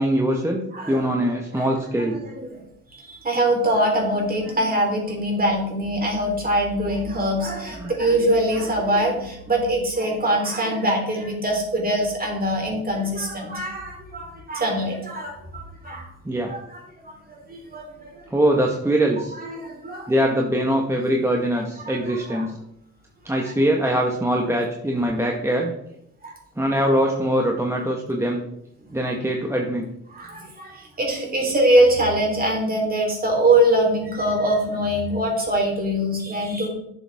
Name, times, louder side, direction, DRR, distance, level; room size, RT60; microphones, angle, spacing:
voice 1, 0.0-0.6 0.9-2.2 7.8-7.9 16.2-16.5 18.3-19.4 20.1-22.5 23.2-25.7 26.6-28.4 28.9-29.9, right 1 dB, 10° right, 0 dB, 1.2 m, -22 dB
voice 2, 0.7-1.1 1.5-1.7 2.0-2.6 2.9-16.1 16.4-18.2 19.3-20.1 21.8-22.5 23.4-23.5 26.2-26.4 30.1-36.7, right 1 dB, 30° right, 0 dB, 3.5 m, -23 dB
10.5 x 7.0 x 3.5 m, 0.77 s
cardioid pair, 90°, 30 cm